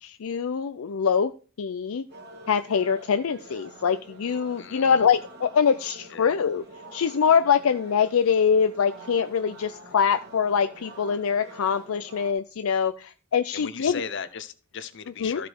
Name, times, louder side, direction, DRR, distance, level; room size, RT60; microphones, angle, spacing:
voice 1, 0.0-2.0 2.5-6.6 6.9-14.0 15.2-15.4, left 6 dB, 75° left, 9 dB, 0.4 m, -24 dB
sound 1, 2.1-12.3, right 1 dB, 50° right, 1.8 m, -47 dB
voice 2, 4.6-5.0 6.1-6.4 13.5-15.5, left 6 dB, 55° left, 13 dB, 0.8 m, -37 dB
14.0 x 5.0 x 4.6 m, 0.38 s
head